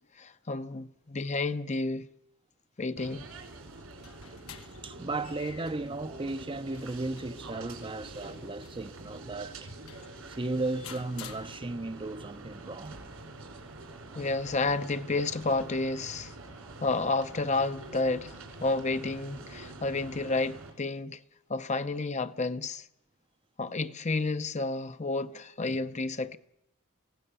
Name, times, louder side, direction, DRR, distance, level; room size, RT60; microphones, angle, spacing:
voice 1, 0.2-2.1 2.8-3.3 14.1-16.3 16.8-21.2 21.5-22.9 23.6-26.4, left 3 dB, 35° left, 0.7 m, -31 dB
sound 1, 3.0-20.7, right 2 dB, 85° right, 5.2 m, -46 dB
sound 2, 3.7-12.1, left 7 dB, 85° left, 1.4 m, -52 dB
voice 2, 4.5-9.7 10.3-13.0, right 2 dB, 25° right, 0.7 m, -35 dB
24.5 x 16.0 x 6.9 m
head